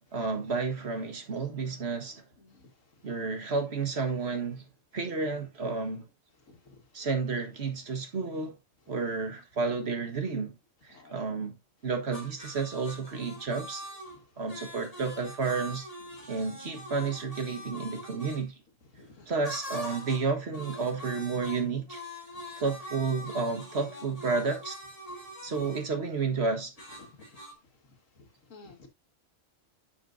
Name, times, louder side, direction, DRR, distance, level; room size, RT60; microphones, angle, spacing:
voice 1, 0.1-2.2 3.0-4.6 4.9-6.0 6.9-8.5 8.9-10.6 10.8-11.6 11.8-13.9 14.4-15.9 16.3-18.5 19.3-22.0 22.6-24.8 25.4-26.7, right 4 dB, 55° right, 1.7 m, -31 dB
voice 2, 2.4-2.7 6.5-6.8 10.9-11.3 14.1-14.2 18.9-19.3 22.3-22.4 27.1-27.3 28.2-28.9, left 3 dB, 85° left, 2.0 m, -54 dB
sound 1, 12.1-18.4 19.4-20.3 20.5-25.9 26.8-27.5, left 1 dB, 30° left, 2.7 m, -43 dB
10.0 x 6.1 x 2.6 m
omnidirectional pair, 1.3 m